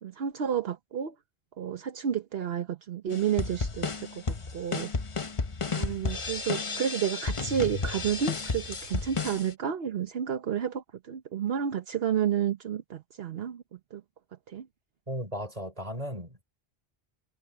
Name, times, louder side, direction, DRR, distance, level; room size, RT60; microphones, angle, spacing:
voice 1, 0.0-1.1 1.6-4.9 5.7-13.6 13.9-14.0 14.5-14.7, right 8 dB, 75° right, 1.2 m, -31 dB
sound 1, 3.1-9.5, left 4 dB, 30° left, 1.0 m, -32 dB
voice 2, 15.1-16.4, equal, 35° right, 5.2 m, -36 dB
omnidirectional pair, 1.0 m